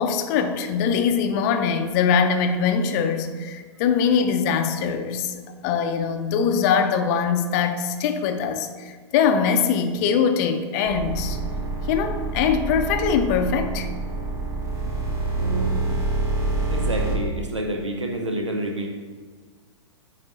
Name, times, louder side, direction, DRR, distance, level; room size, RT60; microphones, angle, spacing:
voice 1, 0.0-11.4 11.9-13.9, left 6 dB, 35° left, 7 dB, 0.5 m, -22 dB
sound 1, 10.8-17.2, right 3 dB, 20° right, 1.1 m, -27 dB
voice 2, 15.4-15.8 16.7-18.9, right 1 dB, 85° right, 2 dB, 0.6 m, -28 dB
8.6 x 4.0 x 2.9 m, 1.5 s
figure-of-eight pair, 105°, 15 cm